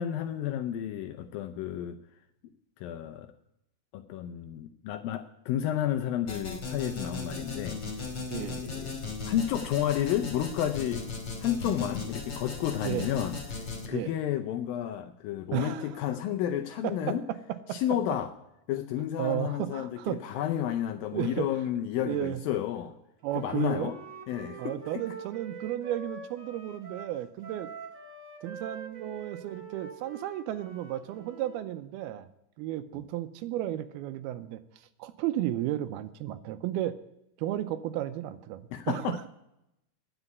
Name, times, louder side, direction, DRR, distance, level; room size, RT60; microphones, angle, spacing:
voice 1, 0.0-2.0 2.8-3.3 3.9-8.9 9.3-11.1 11.4-17.2 17.7-18.3 18.7-23.0 23.4-24.0 24.3-24.6 38.7-39.3, left 11 dB, 80° left, 8 dB, 2.1 m, -31 dB
sound 1, 6.3-13.9, left 4 dB, 35° left, 2.2 m, -37 dB
voice 2, 8.3-8.6 12.8-13.1 13.9-14.1 15.5-16.0 16.8-17.2 17.7-17.8 19.2-20.4 21.1-21.5 22.0-22.4 23.2-23.9 24.6-27.7 28.4-32.3 32.6-37.0 37.4-39.3, right 13 dB, 80° right, 11 dB, 2.5 m, -33 dB
Wind instrument woodwind instrument, 23.2-31.7, right 5 dB, 45° right, 1.1 m, -45 dB
9.9 x 8.1 x 9.2 m, 0.84 s
omnidirectional pair, 4.7 m